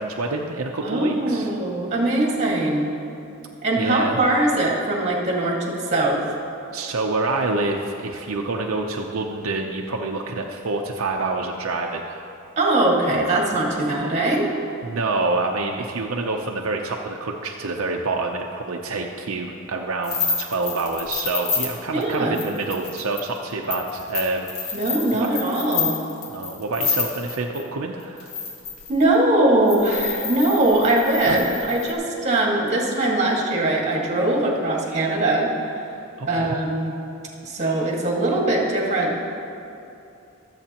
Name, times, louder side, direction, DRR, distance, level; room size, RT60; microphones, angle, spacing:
voice 1, 0.0-1.5 3.8-4.2 6.7-12.3 14.8-25.3 26.3-28.3 31.2-31.4 36.2-36.6, right 3 dB, 70° right, 1 dB, 0.7 m, -27 dB
voice 2, 0.8-2.9 3.6-6.2 12.6-14.5 21.9-22.3 24.7-26.0 28.9-35.5 36.3-36.9 37.4-39.2, right 2 dB, 35° right, -2 dB, 1.9 m, -21 dB
sound 1, 20.0-27.6 28.2-29.0 29.7-31.9, left 5 dB, 80° left, 1.7 m, -29 dB
23.5 x 8.0 x 2.9 m, 2.7 s
head